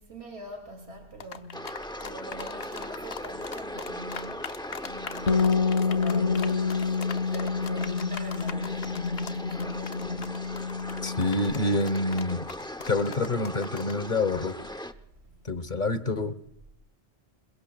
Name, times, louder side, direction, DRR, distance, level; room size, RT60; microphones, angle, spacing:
voice 1, 0.0-1.7 2.0-4.5 4.8-6.8 7.3-10.5 15.2-15.4, left 1 dB, 75° right, 2.9 m, -39 dB
sound 1, 1.2-14.0, left 7 dB, 70° left, 1.1 m, -40 dB
sound 2, 1.5-14.9, left 1 dB, 5° left, 0.6 m, -39 dB
Bass guitar, 5.3-11.5, left 5 dB, 85° left, 1.8 m, -28 dB
voice 2, 11.0-12.5 12.9-14.6 15.4-16.4, left 2 dB, 45° left, 1.2 m, -27 dB
27.0 x 22.5 x 2.3 m
omnidirectional pair, 1.1 m